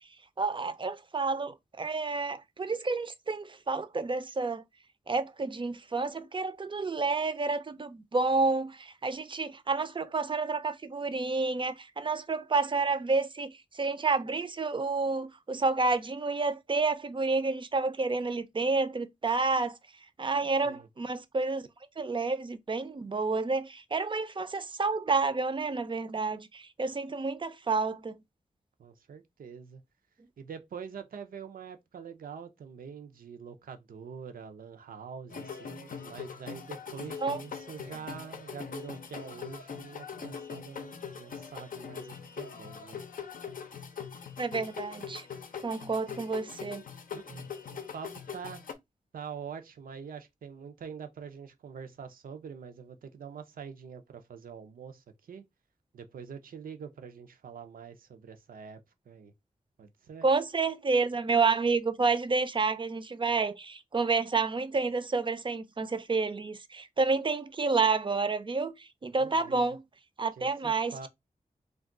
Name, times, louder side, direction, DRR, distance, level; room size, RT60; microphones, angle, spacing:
voice 1, 0.4-4.6 5.1-19.8 20.2-21.7 22.0-28.2 37.2-37.4 44.4-45.3 45.6-46.8 60.2-68.7 69.0-69.8 70.2-71.1, right 4 dB, 35° right, 0.4 m, -29 dB
voice 2, 28.8-29.8 30.4-43.0 47.1-48.6 49.1-55.4 55.9-59.3 59.8-60.3 69.2-69.7 70.4-71.1, right 6 dB, 90° right, 0.5 m, -45 dB
sound 1, 35.3-48.7, left 6 dB, 80° left, 0.5 m, -42 dB
2.3 x 2.3 x 3.7 m
wide cardioid pair, 70°, 14 cm